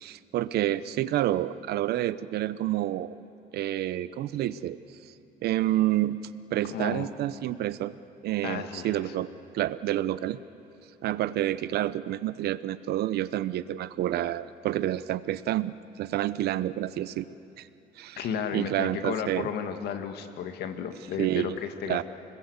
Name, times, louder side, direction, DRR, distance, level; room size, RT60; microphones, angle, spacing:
voice 1, 0.0-3.1 3.5-4.8 5.4-6.2 6.5-8.0 8.2-9.3 9.5-10.4 11.0-17.3 17.6-17.7 18.0-18.2 18.5-19.5 21.2-21.6 21.8-22.0, right 13 dB, 70° right, 16 dB, 0.8 m, -28 dB
voice 2, 6.7-7.1 8.4-9.1 18.2-22.0, left 8 dB, 75° left, 7 dB, 2.1 m, -33 dB
30.0 x 21.0 x 8.1 m, 2.8 s
cardioid pair, 110°, 17 cm